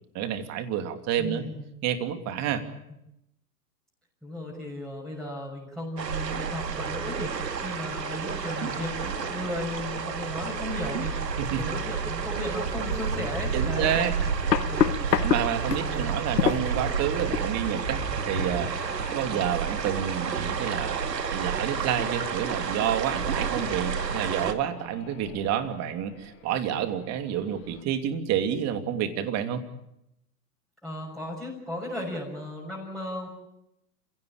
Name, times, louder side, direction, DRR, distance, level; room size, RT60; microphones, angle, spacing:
voice 1, 0.1-1.4 1.8-2.6 11.4-11.6 13.5-14.1 15.2-18.7 19.1-29.6, right 9 dB, 35° right, 7 dB, 2.9 m, -29 dB
voice 2, 1.2-1.7 4.2-11.2 11.6-14.1 14.6-15.0 15.7-16.3 19.3-19.4 30.8-33.3, left 1 dB, ahead, -4 dB, 6.2 m, -35 dB
ambi - agua Rio, 6.0-24.5, right 6 dB, 90° right, 2.4 m, -30 dB
sound 1, 8.4-27.8, left 3 dB, 25° left, 5.3 m, -45 dB
sound 2, 13.0-13.1 13.8-15.9 16.4-16.8 17.3-17.5, left 9 dB, 85° left, 1.2 m, -25 dB
28.5 x 17.0 x 8.8 m, 0.84 s
hypercardioid pair, 120°, 48 cm